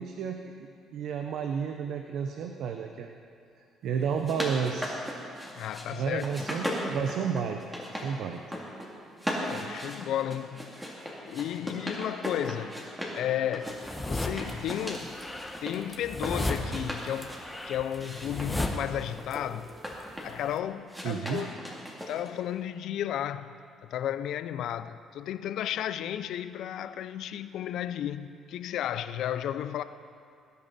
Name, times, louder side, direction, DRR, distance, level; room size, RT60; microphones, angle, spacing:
voice 1, 0.0-3.1 3.8-5.0 5.9-7.6 7.9-8.4 21.0-21.5, right 7 dB, 70° right, 0.7 m, -31 dB
sound 1, 4.0-5.9 6.2-8.1 8.4-8.9 9.2-13.2 13.5-15.8 16.1-17.4 17.9-20.4 20.9-22.4, equal, 5° right, 2.6 m, -37 dB
voice 2, 5.6-6.2 9.4-10.8 11.2-12.8 13.1-15.2 15.6-17.4 17.6-19.7 20.2-21.6 22.1-23.5 23.8-29.8, left 11 dB, 70° left, 0.5 m, -33 dB
sound 2, 13.7-14.5 14.9-19.4 19.6-20.5, left 2 dB, 10° left, 1.1 m, -34 dB
20.0 x 9.4 x 4.2 m
cardioid pair, 105°, 0 cm